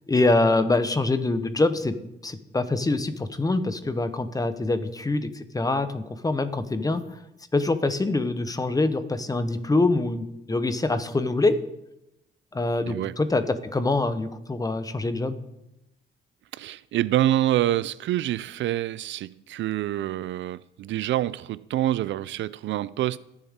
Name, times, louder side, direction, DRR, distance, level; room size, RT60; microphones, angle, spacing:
voice 1, 0.1-2.0 2.2-7.2 7.5-11.6 12.5-15.4, left 2 dB, 20° left, 1.0 m, -24 dB
voice 2, 12.9-13.2 16.5-23.2, right 13 dB, 70° right, 0.4 m, -26 dB
21.5 x 7.3 x 3.7 m
cardioid pair, 90°, 20 cm